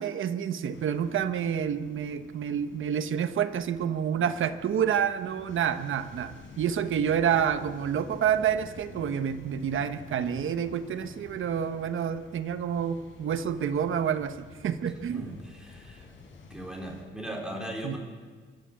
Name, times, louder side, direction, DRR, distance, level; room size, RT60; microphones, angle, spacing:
voice 1, 0.0-14.4 14.6-15.3 17.8-18.0, right 8 dB, 70° right, 10 dB, 1.1 m, -28 dB
sound 1, 0.7-17.0, left 4 dB, 70° left, 4.2 m, -50 dB
voice 2, 15.1-16.1 16.5-18.0, right 1 dB, 5° right, -1 dB, 4.0 m, -38 dB
27.5 x 13.0 x 8.4 m, 1.5 s
wide cardioid pair, 165°, 21 cm